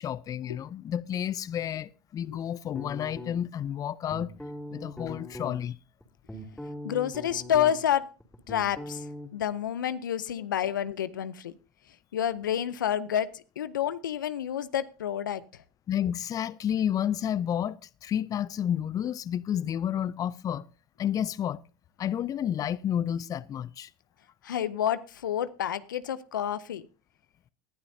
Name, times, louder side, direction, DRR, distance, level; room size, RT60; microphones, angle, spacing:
voice 1, 0.0-4.3 4.7-5.8 15.9-20.7 21.0-21.6 22.0-23.9, left 10 dB, 35° left, 0.5 m, -30 dB
sound 1, 2.7-3.6 4.1-5.5 6.0-9.3, left 1 dB, 5° left, 2.9 m, -40 dB
voice 2, 6.8-8.1 8.5-9.0 9.3-11.5 12.1-13.3 13.6-15.4 24.4-26.8, left 10 dB, 90° left, 0.6 m, -29 dB
19.5 x 11.5 x 2.7 m
hypercardioid pair, 85°, 10 cm